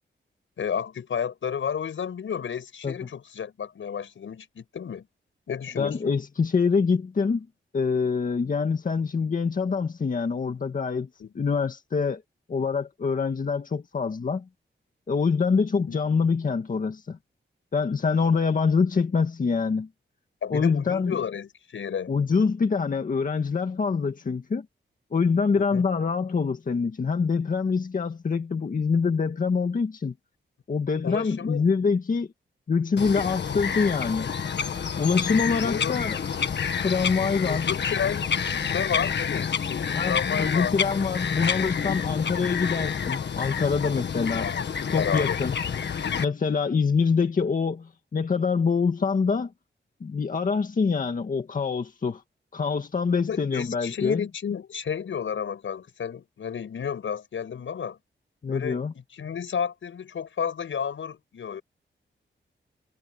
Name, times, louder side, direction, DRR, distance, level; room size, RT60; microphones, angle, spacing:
voice 1, 0.6-5.1 5.5-6.2 11.2-11.5 15.9-16.0 20.4-22.1 25.6-25.8 31.0-31.6 33.4-33.5 35.6-36.0 37.4-41.7 42.1-42.2 44.4-44.6 44.9-45.4 53.3-58.0 58.5-61.6, left 7 dB, 85° left, 6.2 m, -32 dB
voice 2, 5.8-7.5 7.7-11.1 11.4-12.2 12.5-14.4 15.1-17.2 17.7-19.9 20.5-21.2 22.1-24.7 25.1-30.1 30.7-32.3 32.7-34.3 35.0-36.2 36.8-37.7 39.9-44.5 44.9-45.6 46.2-49.5 50.0-52.2 52.5-54.2 58.4-58.9, left 5 dB, 45° left, 1.9 m, -25 dB
Bird vocalization bird call bird song, 33.0-46.2, left 7 dB, 60° left, 1.6 m, -28 dB
wide cardioid pair, 165°, 20 cm